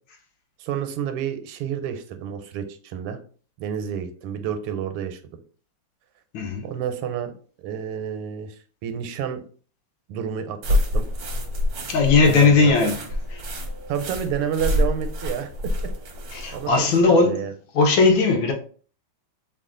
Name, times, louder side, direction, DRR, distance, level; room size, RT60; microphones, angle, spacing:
voice 1, 0.6-3.2 3.6-5.2 6.6-7.3 7.6-9.4 10.1-11.1 12.2-12.7 13.9-15.9 16.5-17.5, right 8 dB, 85° right, 1.5 m, -30 dB
voice 2, 6.3-6.6 11.9-13.0 13.3-13.4 16.3-17.5 17.7-18.5, left 4 dB, 70° left, 1.3 m, -18 dB
sound 1, 10.6-16.7, left 1 dB, 65° right, 1.0 m, -27 dB
3.4 x 2.3 x 3.6 m
omnidirectional pair, 2.4 m